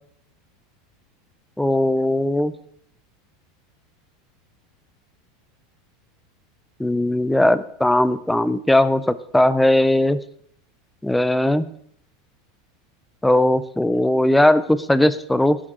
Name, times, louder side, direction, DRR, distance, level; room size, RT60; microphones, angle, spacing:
voice 1, 1.6-2.5 6.8-10.2 11.0-11.7 13.2-15.6, left 1 dB, 5° left, 13 dB, 0.4 m, -18 dB
17.5 x 8.6 x 3.7 m, 0.67 s
supercardioid pair, 175°, 0 cm